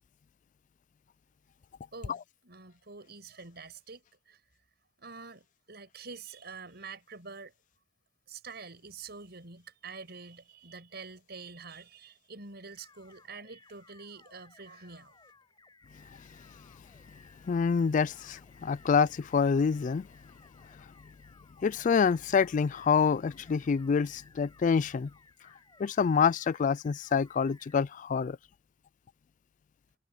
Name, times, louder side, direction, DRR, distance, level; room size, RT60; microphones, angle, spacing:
voice 1, 1.9-4.4 5.0-7.5 8.3-15.2, right 4 dB, 60° right, 7.0 m, -47 dB
sound 1, 12.7-27.8, left 3 dB, 25° left, 7.0 m, -60 dB
voice 2, 17.4-20.1 21.6-25.1 25.8-28.4, left 6 dB, 45° left, 0.3 m, -27 dB
head